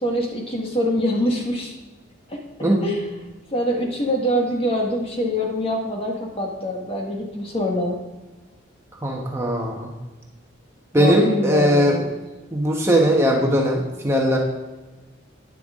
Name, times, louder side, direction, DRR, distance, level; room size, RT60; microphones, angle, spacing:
voice 1, 0.0-1.7 2.3-2.4 2.8-3.0 3.5-8.0 11.0-12.1, equal, 30° left, 0 dB, 1.8 m, -24 dB
voice 2, 2.6-2.9 9.0-9.9 10.9-12.0 12.5-14.4, equal, 15° right, 0 dB, 1.2 m, -19 dB
11.5 x 9.9 x 3.7 m, 1.2 s
head